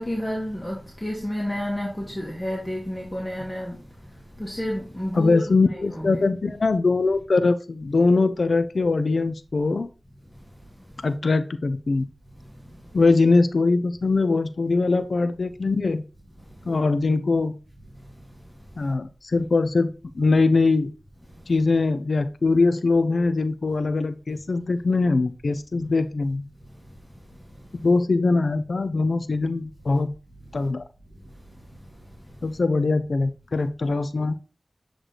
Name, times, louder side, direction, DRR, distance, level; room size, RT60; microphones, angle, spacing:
voice 1, 0.0-3.8 4.4-5.4 5.9-6.2, equal, 25° left, 1.8 m, -30 dB
voice 2, 5.1-9.9 11.0-12.1 12.9-16.0 16.7-17.5 18.8-20.9 21.5-26.5 27.7-30.1 30.5-30.8 32.4-34.3, left 3 dB, 85° left, 0.4 m, -22 dB
7.9 x 3.1 x 3.9 m
wide cardioid pair, 50°, 0 cm